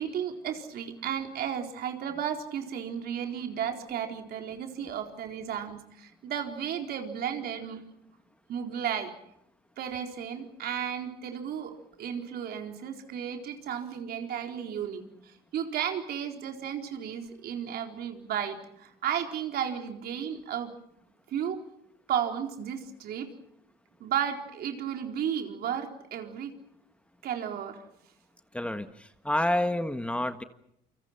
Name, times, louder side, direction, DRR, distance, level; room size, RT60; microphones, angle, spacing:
voice 1, 0.0-7.8 8.5-9.2 9.8-20.8 21.3-21.6 22.1-23.3 24.0-26.5 27.2-27.8, right 8 dB, 65° right, 4 dB, 4.2 m, -34 dB
voice 2, 28.5-30.4, left 1 dB, 5° left, 9 dB, 1.5 m, -29 dB
29.0 x 25.5 x 5.9 m, 0.78 s
cardioid pair, 110°, 17 cm